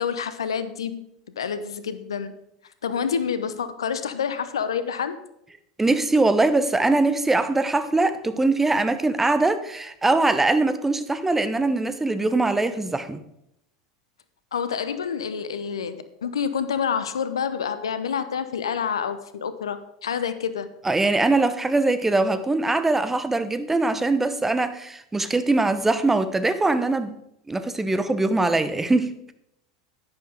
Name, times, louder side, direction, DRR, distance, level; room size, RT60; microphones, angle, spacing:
voice 1, 0.0-2.4 2.8-5.2 14.5-20.7, left 7 dB, 75° left, 12 dB, 0.8 m, -28 dB
voice 2, 5.8-13.2 20.8-27.2 27.5-29.3, right 2 dB, 10° right, 11 dB, 0.9 m, -22 dB
10.5 x 10.0 x 3.8 m, 0.78 s
figure-of-eight pair, 80°, 3 cm